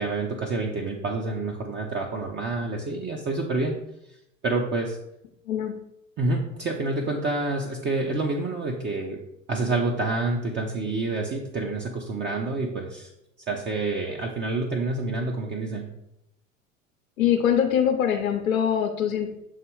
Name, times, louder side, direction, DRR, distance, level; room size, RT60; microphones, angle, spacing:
voice 1, 0.0-3.7 4.4-5.0 6.2-9.2 9.5-13.1 13.5-15.9, right 3 dB, 25° right, 1 dB, 0.8 m, -28 dB
voice 2, 17.2-19.3, left 9 dB, 80° left, 4 dB, 0.8 m, -23 dB
7.5 x 3.0 x 4.6 m, 0.81 s
hypercardioid pair, 90°, 40 cm